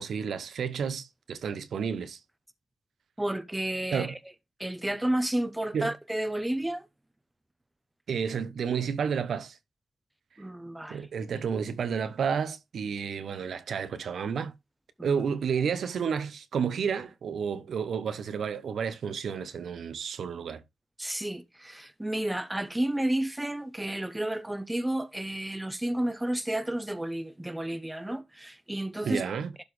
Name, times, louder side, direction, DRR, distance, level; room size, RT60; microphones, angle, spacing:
voice 1, 0.0-2.2 3.9-4.1 5.7-5.9 8.1-9.6 10.9-14.5 15.0-20.6 29.0-29.5, right 6 dB, 80° right, 0.9 m, -31 dB
voice 2, 3.2-4.2 4.6-6.9 10.4-11.1 15.0-15.1 21.0-29.2 29.6-29.7, right 1 dB, 10° right, 0.7 m, -31 dB
11.5 x 4.1 x 3.2 m
wide cardioid pair, 165°, 0 cm